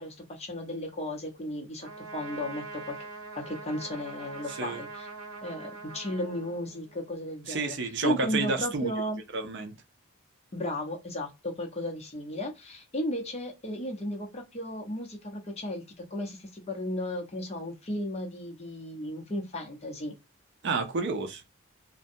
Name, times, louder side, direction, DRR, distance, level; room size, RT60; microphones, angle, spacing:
voice 1, 0.0-3.0 3.3-5.1 5.4-7.8 8.0-9.2 10.5-20.1, left 1 dB, 30° left, 0.7 m, -34 dB
Trumpet, 1.8-7.1, right 3 dB, 70° right, 0.9 m, -43 dB
voice 2, 4.5-4.8 7.5-8.9 9.3-9.7 20.6-21.4, right 4 dB, 55° right, 0.5 m, -30 dB
2.6 x 2.1 x 2.5 m
head